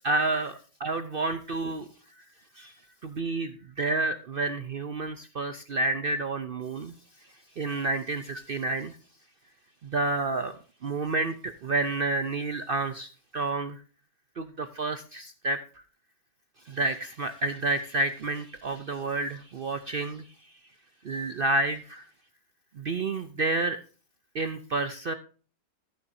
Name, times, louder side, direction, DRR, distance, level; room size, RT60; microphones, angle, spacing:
voice 1, 0.0-1.9 2.6-2.7 3.0-6.9 7.6-9.0 9.8-10.6 10.8-13.8 14.4-15.6 16.7-20.2 21.0-22.0 22.8-23.8 24.3-25.1, right 2 dB, 70° right, 10 dB, 0.5 m, -29 dB
14.5 x 7.1 x 2.6 m, 0.38 s
omnidirectional pair, 1.7 m